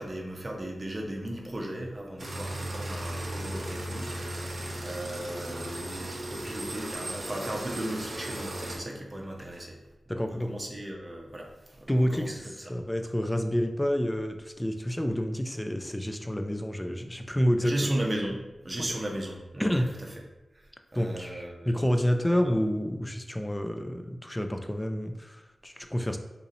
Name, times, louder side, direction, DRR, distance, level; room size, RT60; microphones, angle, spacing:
voice 1, 0.0-9.8 10.1-12.3 17.6-20.1 20.5-21.9 22.2-22.5, right 1 dB, 30° right, 0 dB, 0.7 m, -36 dB
sound 1, 2.2-8.8, right 1 dB, 70° right, 0.8 m, -36 dB
voice 2, 10.1-10.5 11.9-17.9 18.8-18.9 19.6-19.9 20.9-26.2, equal, 15° left, 6 dB, 0.4 m, -29 dB
4.0 x 2.7 x 2.6 m, 1.0 s
wide cardioid pair, 60°, 0 cm